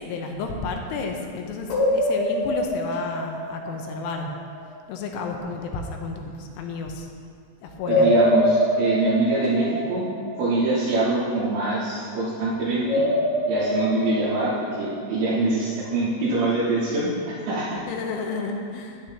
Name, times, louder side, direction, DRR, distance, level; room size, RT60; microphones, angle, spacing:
voice 1, 0.0-4.3 4.9-7.1 7.6-8.1 17.9-19.0, left 4 dB, 80° left, 2 dB, 3.1 m, -31 dB
sound 1, 1.7-4.7 7.8-11.1 12.8-15.6, left 1 dB, 55° left, 2.9 m, -25 dB
voice 2, 7.9-10.1 10.4-13.0 13.5-17.8, right 2 dB, 75° right, -10 dB, 5.7 m, -24 dB
13.5 x 10.0 x 2.9 m, 2.3 s
omnidirectional pair, 5.7 m